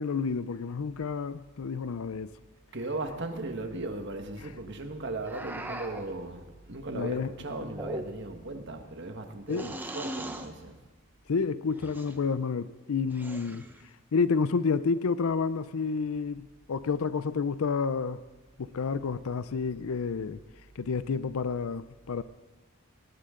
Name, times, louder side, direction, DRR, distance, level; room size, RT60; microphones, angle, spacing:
voice 1, 0.0-2.3 6.9-7.6 9.5-9.7 11.3-13.6 14.1-18.2 18.6-20.4 20.8-22.2, left 5 dB, 85° left, 0.5 m, -30 dB
voice 2, 2.7-10.8, right 2 dB, 55° right, 1.5 m, -37 dB
sound 1, 5.2-6.1 7.6-8.4 9.5-10.5 11.8-12.2 13.1-13.8, right 1 dB, 10° right, 0.9 m, -40 dB
20.0 x 18.0 x 3.8 m
head